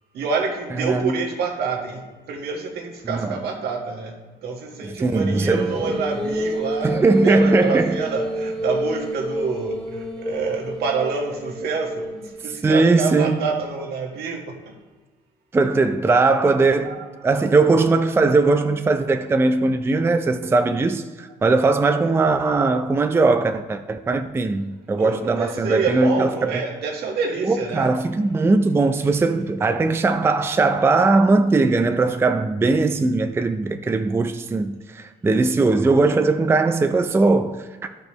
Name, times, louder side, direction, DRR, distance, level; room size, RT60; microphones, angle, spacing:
voice 1, 0.1-6.9 7.2-14.7 16.8-17.1 25.0-27.9, right 4 dB, 75° right, 1.6 m, -27 dB
voice 2, 0.8-1.2 3.1-3.3 5.0-5.8 6.8-8.0 12.6-13.4 15.5-17.0 17.2-26.3 26.5-26.6 27.4-37.7, right 3 dB, 15° right, 0.4 m, -19 dB
sound 1, 5.2-12.6, equal, 5° left, 0.9 m, -28 dB
12.0 x 5.2 x 3.1 m
cardioid pair, 110°, 17 cm